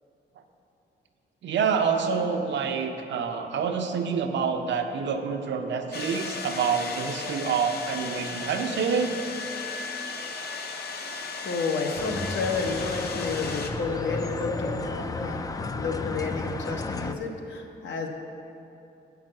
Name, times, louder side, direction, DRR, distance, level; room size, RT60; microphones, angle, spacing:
voice 1, 1.4-9.1, right 6 dB, 75° right, 5 dB, 0.8 m, -27 dB
sound 1, 5.9-13.7, left 4 dB, 60° left, 0.8 m, -36 dB
voice 2, 10.9-18.1, left 4 dB, 80° left, 2 dB, 1.1 m, -31 dB
sound 2, 12.0-17.1, left 3 dB, 20° left, 0.3 m, -33 dB
8.8 x 5.8 x 7.6 m, 2.9 s
wide cardioid pair, 130°, 19 cm